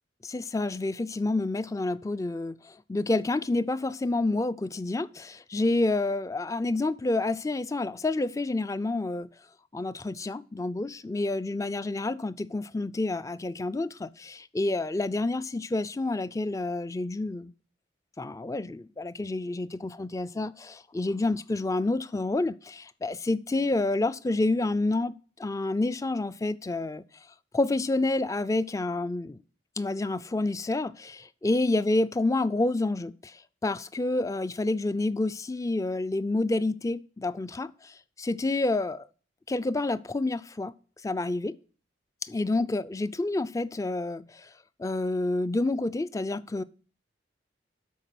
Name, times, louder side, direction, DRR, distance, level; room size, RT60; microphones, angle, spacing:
voice 1, 0.2-9.3 9.7-17.5 18.2-25.1 25.4-27.0 27.5-29.4 29.8-39.1 39.5-40.7 41.0-41.6 42.2-44.5 44.8-46.6, left 2 dB, 15° left, 0.3 m, -29 dB
12.0 x 4.6 x 5.8 m
head